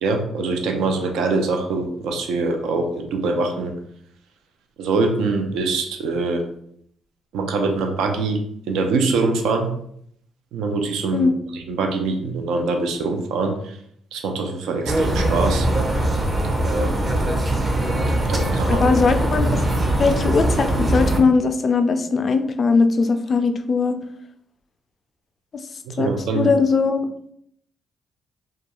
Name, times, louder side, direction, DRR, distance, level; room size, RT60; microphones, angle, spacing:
voice 1, 0.0-3.7 4.8-6.4 7.3-8.4 8.7-9.7 10.5-13.8 14.1-15.7 16.6-17.1 18.3-18.9 25.9-26.5, right 3 dB, 85° right, 4 dB, 0.4 m, -23 dB
sound 1, 14.9-21.2, right 1 dB, 25° right, 0.5 m, -21 dB
voice 2, 18.7-19.6 20.0-23.9 26.0-27.0, left 4 dB, 45° left, 8 dB, 0.3 m, -19 dB
2.3 x 2.2 x 2.8 m, 0.68 s
cardioid pair, 85°, 0 cm